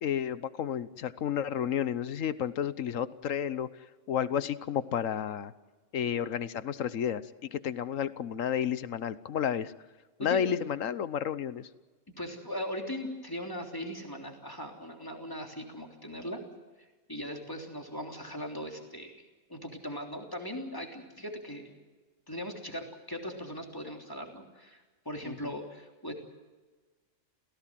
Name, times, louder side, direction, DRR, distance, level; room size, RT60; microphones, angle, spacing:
voice 1, 0.0-3.7 4.1-5.5 5.9-9.7 10.2-11.7 25.2-25.5, left 9 dB, 80° left, 15 dB, 1.3 m, -31 dB
voice 2, 10.2-10.5 12.2-16.4 16.8-21.8 22.3-26.1, equal, 15° left, 2 dB, 3.4 m, -39 dB
28.0 x 17.0 x 7.6 m, 1.3 s
omnidirectional pair, 1.3 m